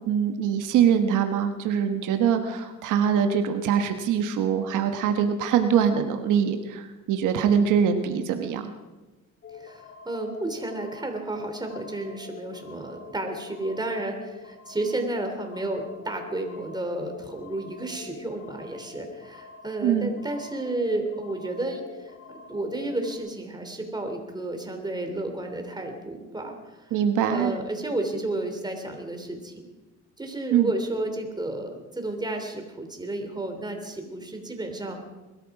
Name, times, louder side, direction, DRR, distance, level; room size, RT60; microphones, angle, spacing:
voice 1, 0.1-8.7 19.8-20.1 26.9-27.5 30.5-30.7, right 8 dB, 90° right, 7 dB, 1.3 m, -23 dB
sound 1, 9.4-23.2, left 5 dB, 45° left, 2.0 m, -45 dB
voice 2, 9.5-22.1 22.5-26.6 26.9-27.0 27.3-29.7 30.2-35.0, right 2 dB, 15° right, 4 dB, 3.2 m, -32 dB
21.5 x 13.0 x 4.9 m, 1.2 s
cardioid pair, 90°, 30 cm